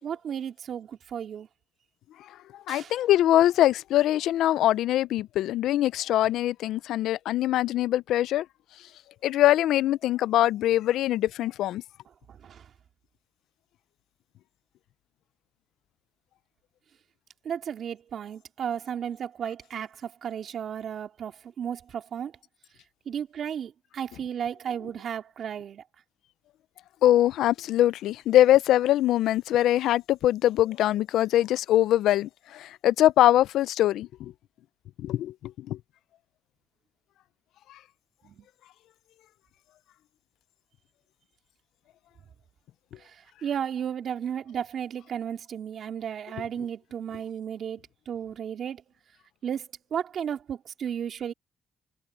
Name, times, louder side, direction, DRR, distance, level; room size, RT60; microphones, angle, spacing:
voice 1, 0.0-1.5 2.7-2.9 12.3-12.6 17.4-22.3 23.0-25.8 38.2-38.4 43.4-47.8 48.1-48.8 49.4-51.3, right 8 dB, 60° right, 3.4 m, -34 dB
voice 2, 2.7-8.4 9.2-11.8 27.0-34.3 35.0-35.3 35.7-35.8, left 13 dB, 85° left, 0.4 m, -23 dB
cardioid pair, 90°, 0 cm